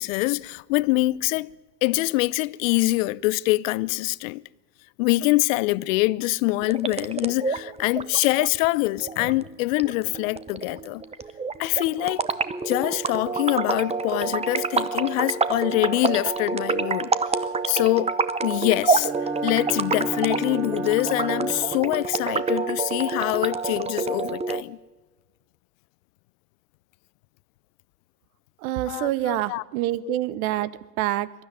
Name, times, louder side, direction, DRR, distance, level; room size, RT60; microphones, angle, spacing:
voice 1, 0.0-1.5 1.8-4.4 5.0-11.0 11.6-12.2 12.6-17.1 17.7-18.2 18.4-19.1 19.4-24.8 28.9-29.6 30.0-30.2, left 21 dB, 55° left, 0.7 m, -24 dB
sound 1, 6.6-24.6, right 4 dB, 15° right, 0.9 m, -28 dB
Bowed string instrument, 18.9-21.9, right 1 dB, 45° right, 6.0 m, -33 dB
voice 2, 28.6-31.3, right 15 dB, 60° right, 1.1 m, -26 dB
22.5 x 12.5 x 9.6 m
hypercardioid pair, 90°, 48 cm